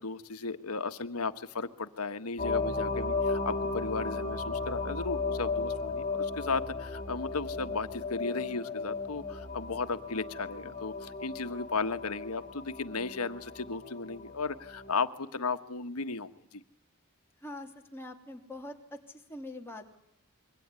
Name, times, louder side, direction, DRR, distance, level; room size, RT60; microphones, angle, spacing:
voice 1, 0.0-16.6, left 4 dB, 85° left, 9 dB, 1.4 m, -35 dB
sound 1, 2.4-14.9, left 3 dB, 30° left, 4.6 m, -35 dB
voice 2, 17.4-20.0, left 1 dB, 10° left, 1 dB, 3.0 m, -44 dB
26.0 x 23.5 x 9.8 m, 0.74 s
head